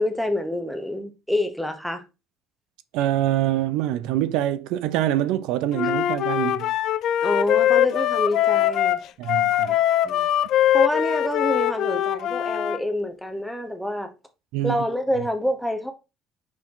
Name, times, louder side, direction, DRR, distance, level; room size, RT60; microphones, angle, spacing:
voice 1, 0.0-2.0 7.2-9.0 10.0-10.3 10.7-14.1 14.6-15.9, left 1 dB, ahead, 0.8 m, -27 dB
voice 2, 2.9-6.7 9.2-9.8 14.5-14.8, right 13 dB, 80° right, 0.5 m, -25 dB
Wind instrument woodwind instrument, 5.7-12.8, left 12 dB, 50° left, 0.4 m, -22 dB
6.0 x 4.6 x 3.7 m
cardioid pair, 170°, 0 cm